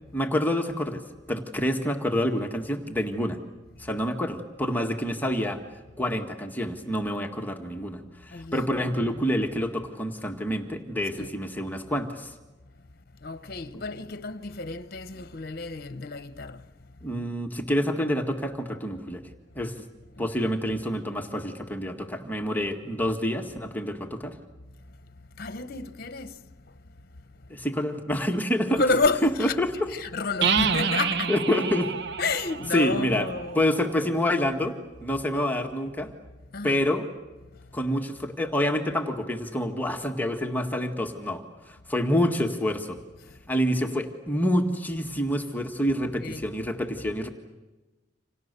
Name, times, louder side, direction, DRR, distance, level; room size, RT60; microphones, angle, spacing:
voice 1, 0.1-1.0 1.3-3.4 3.8-5.6 6.0-12.3 17.0-19.2 19.5-19.8 20.2-24.3 27.5-28.8 29.4-29.7 31.3-31.9 32.7-33.3 33.5-34.7 35.0-36.1 36.6-37.0 37.7-41.4 41.7-43.0 43.5-47.3, equal, 10° left, 1.8 m, -27 dB
voice 2, 8.3-8.7 8.9-9.4 11.2-11.3 13.2-16.7 20.2-20.5 25.4-26.4 28.8-29.6 29.9-31.3 32.2-33.6 36.5-36.8 43.3-43.4 46.0-46.5, left 3 dB, 55° left, 1.0 m, -30 dB
sound 1, 30.4-34.1, right 6 dB, 65° right, 1.1 m, -28 dB
29.0 x 27.0 x 6.8 m
head